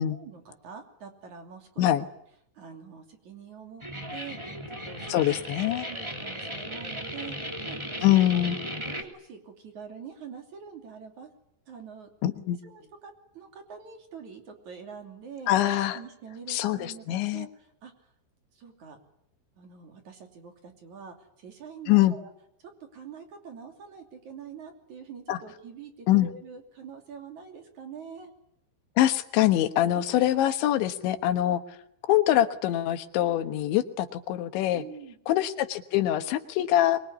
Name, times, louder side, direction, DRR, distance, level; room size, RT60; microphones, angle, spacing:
voice 1, 0.1-1.9 2.5-3.8 4.1-7.8 8.1-8.4 8.8-11.3 11.7-12.1 12.6-15.5 15.9-18.1 18.5-19.0 19.6-22.3 22.6-28.3 29.9-30.0 34.7-35.2, right 6 dB, 45° right, 5 dB, 3.9 m, -45 dB
sound 1, 3.8-9.0, equal, 10° right, 2.1 m, -36 dB
voice 2, 5.1-5.9 8.0-8.6 12.2-12.6 15.5-16.0 16.5-17.5 21.9-22.2 25.3-25.4 26.1-26.3 29.0-31.6 32.1-34.8 35.3-37.0, left 13 dB, 85° left, 10 dB, 3.7 m, -24 dB
24.5 x 23.5 x 9.8 m, 0.73 s
omnidirectional pair, 5.1 m